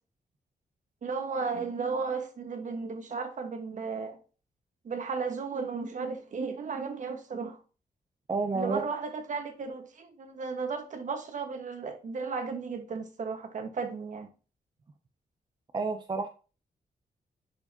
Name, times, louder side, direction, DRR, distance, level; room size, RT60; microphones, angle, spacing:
voice 1, 1.0-4.2 4.8-7.6 8.5-14.3, right 5 dB, 50° right, 1.5 m, -34 dB
voice 2, 8.3-8.9 15.7-16.3, right 4 dB, 30° right, 0.6 m, -30 dB
10.5 x 4.7 x 2.8 m
wide cardioid pair, 175°, 16 cm